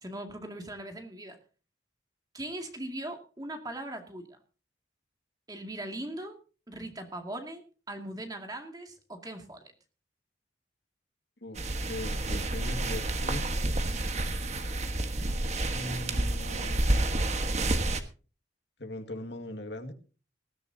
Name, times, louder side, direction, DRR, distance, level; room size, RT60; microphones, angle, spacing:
voice 1, 0.0-1.4 2.3-4.4 5.5-6.4 6.7-7.6 7.9-9.7, right 1 dB, 20° right, 4 dB, 2.2 m, -40 dB
sound 1, 11.5-18.0, right 1 dB, 35° right, 1.4 m, -29 dB
voice 2, 11.9-13.5 15.7-16.9 18.8-19.9, left 1 dB, 65° left, 6 dB, 2.0 m, -39 dB
20.0 x 14.0 x 2.8 m, 0.35 s
head